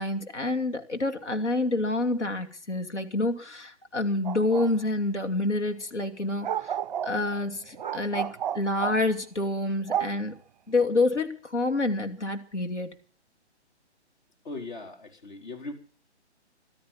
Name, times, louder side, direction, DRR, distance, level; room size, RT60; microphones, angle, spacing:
voice 1, 0.0-6.8 7.0-8.3 8.5-10.3 10.7-12.9, left 2 dB, 80° left, 6 dB, 2.8 m, -28 dB
sound 1, 4.2-4.7 6.4-9.0 9.9-10.3, right 9 dB, 40° right, 0.7 m, -32 dB
voice 2, 14.4-15.7, left 2 dB, 45° left, 4 dB, 4.2 m, -39 dB
14.5 x 13.0 x 7.3 m, 0.43 s
figure-of-eight pair, 135°, 35 cm